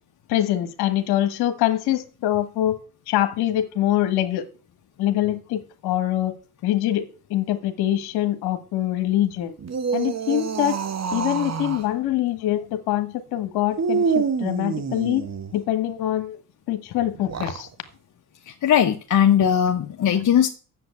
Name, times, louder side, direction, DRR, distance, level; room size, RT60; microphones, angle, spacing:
voice 1, 0.3-2.8 3.1-4.4 5.0-6.3 6.6-7.0 7.3-9.5 9.9-10.8 11.1-15.2 15.5-16.4 16.7-17.7, left 13 dB, 70° left, 10 dB, 1.5 m, -24 dB
sound 1, 9.6-11.9 13.7-15.5 17.1-17.7, right 6 dB, 40° right, 1.6 m, -26 dB
voice 2, 18.5-20.5, left 9 dB, 50° left, 4 dB, 1.1 m, -19 dB
7.8 x 7.1 x 8.1 m, 0.38 s
hypercardioid pair, 55°, 40 cm